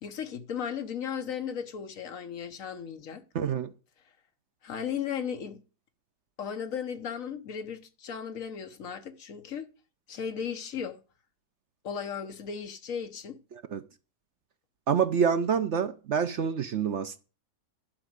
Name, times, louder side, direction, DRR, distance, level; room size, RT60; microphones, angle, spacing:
voice 1, 0.0-3.2 4.6-5.6 6.4-9.7 10.1-11.0 11.8-13.4, left 7 dB, 60° left, 1.4 m, -36 dB
voice 2, 3.3-3.7 13.7-13.8 14.9-17.2, right 7 dB, 60° right, 0.9 m, -27 dB
11.5 x 4.8 x 7.9 m
omnidirectional pair, 1.6 m